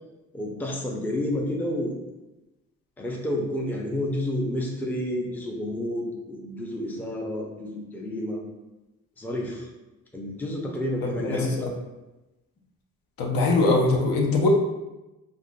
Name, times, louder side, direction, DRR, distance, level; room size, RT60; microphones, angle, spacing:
voice 1, 0.3-2.0 3.0-8.4 9.2-9.7 10.1-11.7, left 1 dB, 5° left, 0 dB, 0.5 m, -30 dB
voice 2, 11.0-11.7 13.2-14.5, left 3 dB, 60° left, 0 dB, 0.7 m, -22 dB
3.6 x 2.4 x 2.3 m, 1.0 s
supercardioid pair, 55°, 38 cm